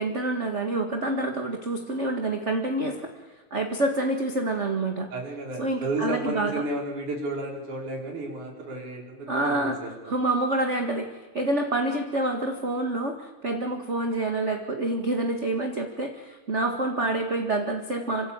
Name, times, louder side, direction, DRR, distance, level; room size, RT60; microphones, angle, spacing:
voice 1, 0.0-3.1 3.5-5.1 5.6-6.6 9.3-11.1 11.3-18.3, right 2 dB, 30° right, 4 dB, 1.5 m, -27 dB
voice 2, 5.1-10.1, right 2 dB, 85° right, 0 dB, 6.4 m, -32 dB
26.5 x 25.0 x 8.8 m, 1.3 s
omnidirectional pair, 3.4 m